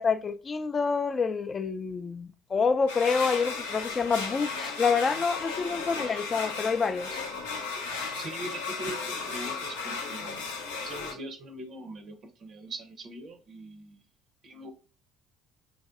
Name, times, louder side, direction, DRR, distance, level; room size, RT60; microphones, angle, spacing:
voice 1, 0.0-7.2, left 5 dB, 35° left, 0.4 m, -27 dB
sound 1, 2.9-11.1, left 4 dB, 85° left, 0.6 m, -35 dB
voice 2, 8.1-10.5 10.8-14.0 14.4-14.7, right 1 dB, 50° right, 0.5 m, -42 dB
3.1 x 2.6 x 2.4 m
hypercardioid pair, 60°, 0 cm